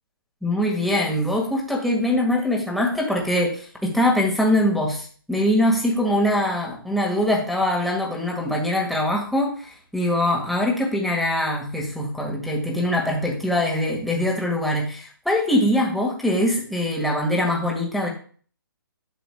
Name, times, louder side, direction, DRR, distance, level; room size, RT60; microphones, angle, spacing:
voice 1, 0.4-18.1, left 1 dB, ahead, -2 dB, 1.8 m, -23 dB
11.0 x 6.9 x 2.3 m, 0.44 s
figure-of-eight pair, 140°, 12 cm